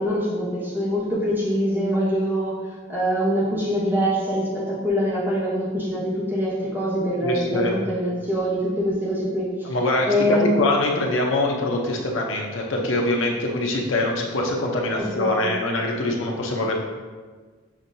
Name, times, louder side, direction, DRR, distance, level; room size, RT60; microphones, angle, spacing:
voice 1, 0.0-2.6 2.9-9.7 10.1-10.5 15.2-15.5, equal, 10° right, -6 dB, 0.9 m, -24 dB
voice 2, 7.2-7.8 9.6-16.7, left 1 dB, 65° left, 0 dB, 0.7 m, -23 dB
7.1 x 2.6 x 2.7 m, 1.5 s
head